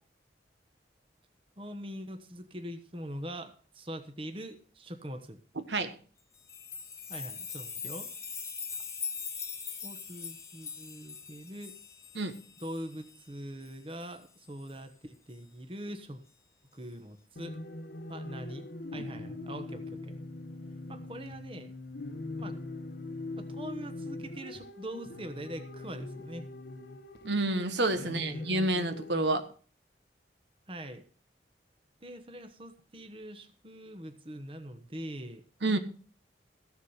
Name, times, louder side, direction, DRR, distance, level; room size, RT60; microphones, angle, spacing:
voice 1, 1.6-5.4 7.1-8.1 9.8-11.7 12.6-16.2 16.7-17.6 18.1-18.7 18.9-20.1 20.9-21.7 22.4-22.5 23.3-26.5 28.0-28.5 30.7-31.0 32.0-35.8, right 1 dB, 30° right, 8 dB, 1.1 m, -43 dB
sound 1, 6.3-13.2 13.6-13.7 14.0-14.1 14.7-14.8, left 5 dB, 15° left, 1.1 m, -41 dB
sound 2, 17.4-29.4, left 2 dB, 60° left, 1.1 m, -42 dB
voice 2, 27.2-29.5 35.6-35.8, right 2 dB, 75° right, 9 dB, 1.3 m, -29 dB
15.0 x 7.3 x 5.6 m, 0.41 s
head